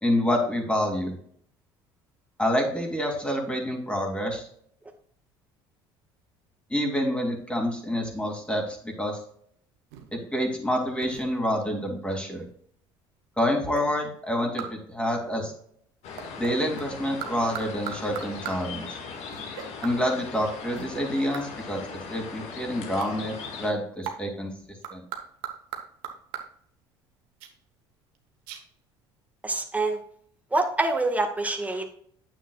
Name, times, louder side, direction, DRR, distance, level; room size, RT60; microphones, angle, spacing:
voice 1, 0.0-1.1 2.4-4.5 6.7-9.2 10.1-12.4 13.4-15.5 16.4-19.0 19.8-24.5 24.9-25.0, equal, 10° left, 1 dB, 2.6 m, -27 dB
sound 1, 9.9-10.2 11.0-11.5 13.8-13.9 14.6-14.8 16.2-16.9 17.2-18.7 19.3-20.0 20.7-21.5 23.0-23.2 24.0-24.3 24.8-26.6 27.4-27.5 28.1-28.2 28.5-28.6, right 9 dB, 75° right, 1.2 m, -38 dB
sound 2, 16.0-23.7, left 5 dB, 60° left, 1.8 m, -39 dB
voice 2, 29.4-30.0 30.5-31.9, right 2 dB, 10° right, 4 dB, 1.6 m, -26 dB
9.1 x 7.7 x 2.4 m, 0.62 s
hypercardioid pair, 65°, 13 cm